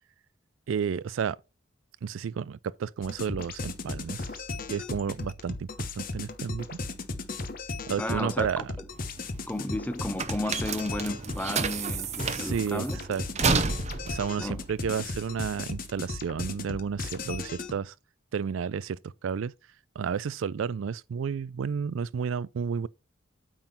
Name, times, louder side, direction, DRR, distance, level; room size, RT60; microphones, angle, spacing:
voice 1, 0.7-1.4 2.0-4.4 4.7-5.7 6.0-6.8 7.9-8.7 12.3-13.5 14.1-17.9 18.3-19.5 20.0-22.9, right 7 dB, 75° right, 0.4 m, -32 dB
sound 1, 3.0-17.7, left 3 dB, 45° left, 1.1 m, -36 dB
voice 2, 8.0-8.9 9.5-13.0 14.4-14.6, left 1 dB, 10° left, 0.6 m, -33 dB
sound 2, 8.9-15.7, right 5 dB, 35° right, 0.7 m, -31 dB
8.9 x 3.8 x 5.7 m
head